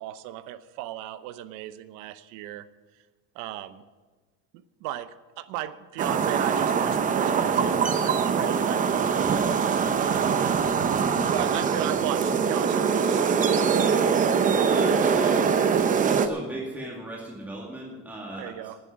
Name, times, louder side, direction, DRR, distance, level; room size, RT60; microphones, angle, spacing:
voice 1, 0.0-2.7 3.3-3.8 4.8-9.3 9.6-10.6 11.3-14.0 18.4-18.8, right 13 dB, 80° right, 14 dB, 0.9 m, -36 dB
sound 1, 6.0-16.3, right 6 dB, 25° right, 0.7 m, -23 dB
voice 2, 14.6-15.5 16.0-18.7, right 1 dB, 5° right, -3 dB, 2.3 m, -37 dB
9.9 x 9.8 x 9.5 m, 1.4 s
cardioid pair, 155°, 31 cm